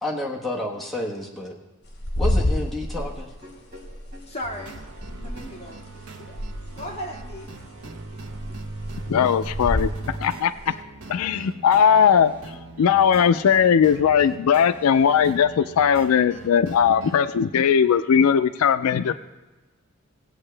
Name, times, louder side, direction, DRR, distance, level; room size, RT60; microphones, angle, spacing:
voice 1, 0.0-1.5 2.2-3.3, left 1 dB, ahead, -3 dB, 1.2 m, -30 dB
sound 1, 1.9-6.0 6.3-7.7 8.0-10.0 10.6-10.7, left 1 dB, 50° left, 2.1 m, -28 dB
sound 2, 2.3-6.5 6.8-9.7 10.0-10.8 11.1-16.9, left 1 dB, 40° right, 4.3 m, -51 dB
voice 2, 4.3-4.8 5.1-5.8 6.2-6.4 6.7-7.5, equal, 30° left, -2 dB, 1.8 m, -36 dB
sound 3, 4.4-17.2, right 2 dB, 85° right, 1.1 m, -40 dB
voice 3, 9.1-9.9 10.2-10.7 11.1-12.3 12.8-19.2, left 7 dB, 85° left, 13 dB, 0.4 m, -19 dB
18.0 x 8.0 x 3.3 m, 1.2 s
head